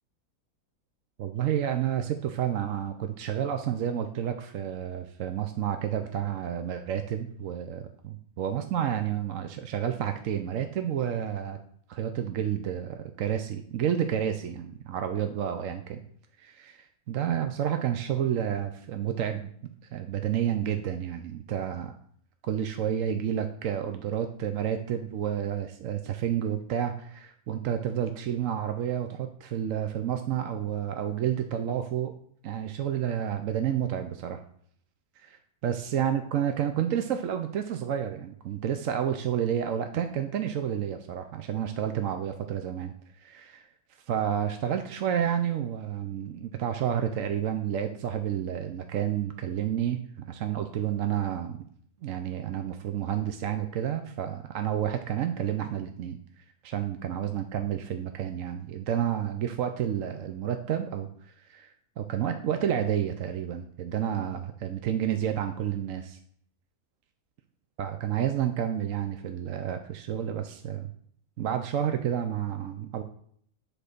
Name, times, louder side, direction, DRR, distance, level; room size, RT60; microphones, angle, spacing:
voice 1, 1.2-11.6 11.9-16.0 16.4-19.5 19.9-21.9 22.4-32.1 32.4-34.4 35.2-35.3 35.6-43.7 44.1-51.6 52.0-56.2 56.6-66.2 67.8-70.9 71.4-73.0, right 9 dB, 65° right, 7 dB, 1.0 m, -30 dB
10.0 x 4.5 x 6.6 m, 0.63 s
omnidirectional pair, 1.5 m